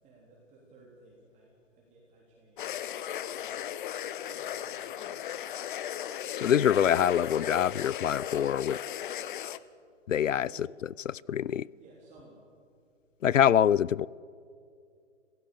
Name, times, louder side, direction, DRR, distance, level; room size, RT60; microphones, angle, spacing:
voice 1, 0.0-3.7 4.2-5.2 6.2-6.9 10.4-10.6 11.8-12.5, right 2 dB, 20° right, 3.9 m, -57 dB
sound 1, 2.6-9.6, left 11 dB, 40° left, 0.8 m, -36 dB
voice 2, 6.4-8.8 10.1-10.5 11.0-11.7 13.2-14.1, left 9 dB, 80° left, 0.6 m, -25 dB
27.0 x 17.0 x 6.9 m
figure-of-eight pair, 130°, 38 cm